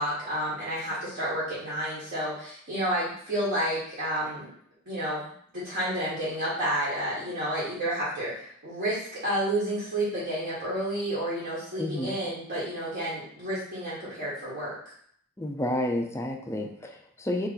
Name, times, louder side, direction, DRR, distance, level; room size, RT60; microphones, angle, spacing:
voice 1, 0.0-4.5 4.8-14.9, right 1 dB, 50° right, -10 dB, 1.4 m, -30 dB
voice 2, 11.8-12.2 15.4-17.5, left 1 dB, 15° left, 2 dB, 0.4 m, -30 dB
3.2 x 2.9 x 3.8 m, 0.62 s
head